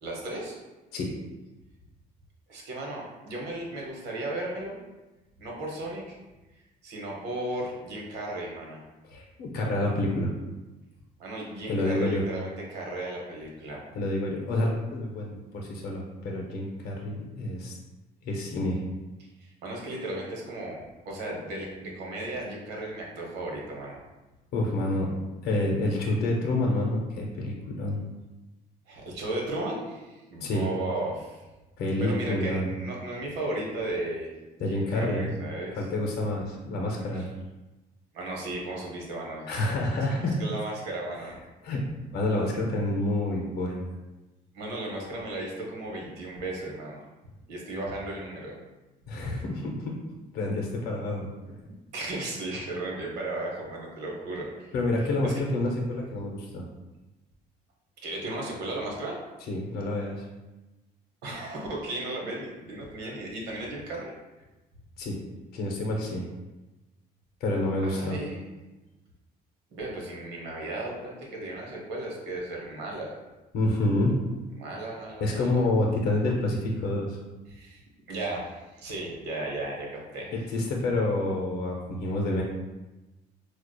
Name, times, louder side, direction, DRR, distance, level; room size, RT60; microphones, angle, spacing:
voice 1, 0.0-0.6 2.5-4.8 5.4-6.0 6.8-8.8 11.2-13.9 19.4-20.8 21.0-24.0 28.9-31.4 32.0-34.3 34.7-35.8 37.1-37.3 38.1-39.5 40.4-41.4 44.5-47.0 47.5-48.5 51.9-54.7 55.2-55.3 58.0-59.2 61.2-64.1 67.8-68.5 69.7-73.1 74.6-75.6 77.5-77.8 78.1-79.9 80.1-80.3, right 2 dB, 85° right, -1 dB, 0.9 m, -35 dB
voice 2, 9.1-10.3 11.7-12.2 13.9-17.8 18.2-18.8 24.5-25.1 25.4-28.0 30.4-30.7 31.8-32.7 34.6-35.3 35.7-37.3 39.5-40.4 41.6-41.8 42.1-43.9 49.1-50.0 50.3-51.3 54.7-56.6 59.5-60.2 65.0-65.2 65.5-66.3 67.4-68.2 73.5-74.2 75.2-77.2 80.3-82.4, left 1 dB, 65° left, -1 dB, 0.6 m, -28 dB
4.6 x 2.3 x 2.2 m, 1.1 s
cardioid pair, 110°, 17 cm